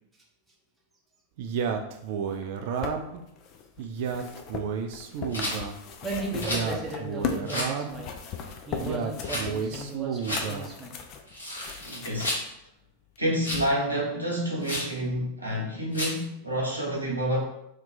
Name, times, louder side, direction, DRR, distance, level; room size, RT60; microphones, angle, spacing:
Male speech man speaking, 1.4-3.2 3.8-5.8 6.3-8.0 8.7-10.7, right 6 dB, 50° right, 0.3 m, -32 dB
sound 1, 2.3-7.5 7.8-12.4 13.2-13.3, left 6 dB, 40° left, 0.4 m, -38 dB
Rattle, 5.3-5.6 6.4-6.7 7.5-7.7 9.2-9.5 10.2-10.4 11.3-12.5 13.4-13.7 14.6-14.9 15.9-16.2, left 1 dB, 80° left, 1.3 m, -32 dB
voice 1, 6.0-8.1 8.7-11.0, right 1 dB, 10° right, -2 dB, 0.7 m, -36 dB
voice 2, 8.4-8.8 11.8-12.4 13.2-17.4, equal, 85° right, -4 dB, 0.9 m, -29 dB
2.8 x 2.2 x 3.8 m, 0.80 s
figure-of-eight pair, 90°, 0 cm